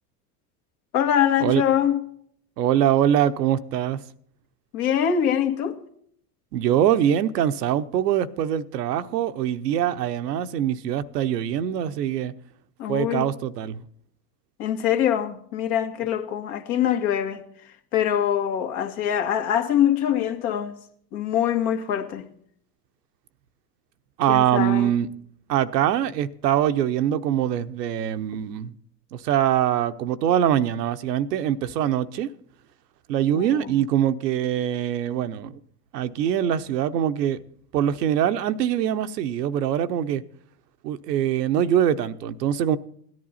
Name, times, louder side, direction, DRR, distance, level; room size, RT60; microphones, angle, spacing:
voice 1, 0.9-2.0 4.7-5.8 12.8-13.3 14.6-17.4 17.9-20.8 21.1-22.3 24.3-24.9 33.3-33.6, left 9 dB, 70° left, 1.9 m, -23 dB
voice 2, 2.6-4.0 6.5-12.3 12.9-13.8 24.2-25.1 25.5-28.7 29.1-32.3 33.1-35.5 35.9-37.4 37.7-40.2 40.8-42.8, right 10 dB, 85° right, 0.9 m, -23 dB
17.0 x 11.0 x 4.1 m
hypercardioid pair, 90°, 48 cm